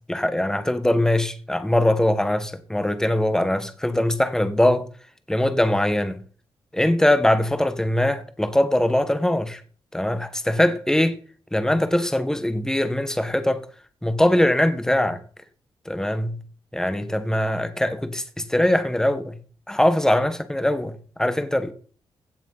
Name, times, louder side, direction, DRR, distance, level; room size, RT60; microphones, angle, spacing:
voice 1, 0.1-4.9 5.3-6.2 6.7-9.6 9.9-11.2 11.5-13.6 14.0-15.2 15.8-16.4 16.7-19.4 19.7-21.7, left 1 dB, 5° left, 1.6 m, -22 dB
16.5 x 7.3 x 5.6 m
cardioid pair, 85°, 9 cm